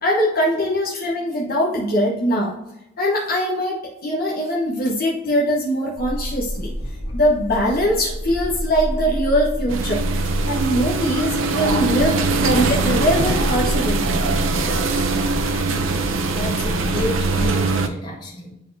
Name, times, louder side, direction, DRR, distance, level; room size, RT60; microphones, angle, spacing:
voice 1, 0.0-2.6 3.0-6.7 7.1-14.2, equal, 50° left, -3 dB, 1.0 m, -22 dB
sound 1, 6.0-17.6, equal, 70° left, 1.4 m, -28 dB
sound 2, 9.7-17.9, right 3 dB, 75° right, 0.6 m, -22 dB
voice 2, 16.3-18.5, left 1 dB, 25° left, -3 dB, 1.7 m, -30 dB
10.0 x 3.9 x 2.7 m, 0.88 s
head